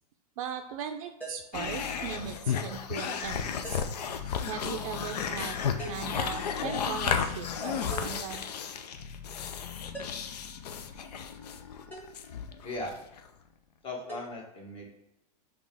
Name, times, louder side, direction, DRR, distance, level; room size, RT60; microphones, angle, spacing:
voice 1, 0.4-3.8 4.5-8.4, right 8 dB, 60° right, 6 dB, 0.4 m, -39 dB
sound 1, 1.2-1.6 3.6-4.1 5.8-6.2 7.9-8.3 9.9-10.4 11.9-12.2 14.1-14.3, right 1 dB, 10° left, 1.3 m, -42 dB
sound 2, 1.5-13.3, left 7 dB, 85° left, 0.5 m, -33 dB
voice 2, 12.6-13.0 13.8-14.9, left 2 dB, 25° left, 0 dB, 1.3 m, -38 dB
5.1 x 3.0 x 3.4 m, 0.83 s
hypercardioid pair, 120°, 20 cm